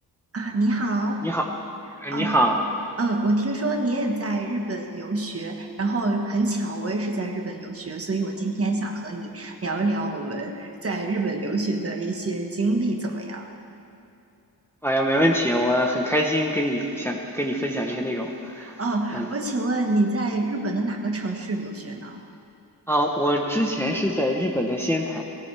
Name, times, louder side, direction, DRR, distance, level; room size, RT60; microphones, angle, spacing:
voice 1, 0.3-1.2 2.1-2.4 3.0-13.5 18.6-22.2, right 2 dB, 35° right, 2 dB, 1.4 m, -26 dB
voice 2, 2.0-2.6 14.8-18.8 19.1-19.3 22.9-25.2, equal, 5° left, 0 dB, 0.9 m, -24 dB
19.0 x 17.5 x 3.4 m, 2.7 s
wide cardioid pair, 140°, 38 cm